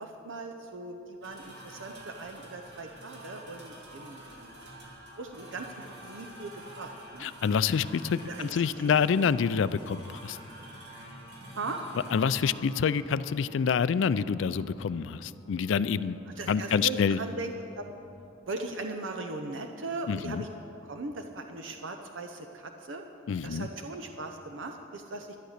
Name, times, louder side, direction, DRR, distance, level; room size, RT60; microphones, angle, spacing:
voice 1, 0.0-4.6 5.2-7.3 8.2-9.4 11.6-11.8 16.3-17.9 18.5-20.5 20.8-23.0 23.4-25.4, right 3 dB, 75° right, 5 dB, 0.8 m, -39 dB
sound 1, 1.2-18.8, right 1 dB, 60° right, 2.7 m, -49 dB
voice 2, 7.2-10.4 12.1-16.2 16.5-17.2 20.1-20.4 23.3-23.7, left 6 dB, 70° left, 16 dB, 0.4 m, -27 dB
12.0 x 11.0 x 6.5 m, 2.7 s
head